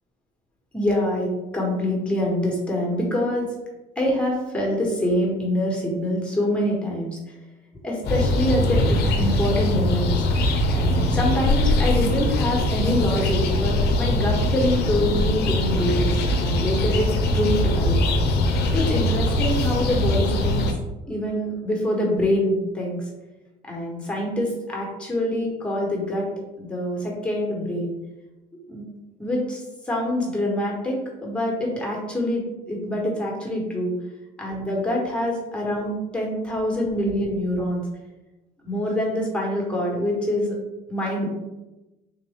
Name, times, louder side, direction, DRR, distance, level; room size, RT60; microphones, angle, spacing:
voice 1, 0.7-3.5 4.0-7.2 7.8-10.1 10.7-18.0 18.7-20.6 21.1-23.0 23.7-26.3 26.6-28.0 28.7-28.9 29.2-29.6 29.9-32.4 32.7-33.9 34.4-37.8 38.6-40.6 40.9-41.3, left 1 dB, 5° left, -2 dB, 1.2 m, -25 dB
sound 1, 8.0-20.7, left 1 dB, 75° left, 0.6 m, -22 dB
3.5 x 2.4 x 3.6 m, 1.0 s
cardioid pair, 110°, 17 cm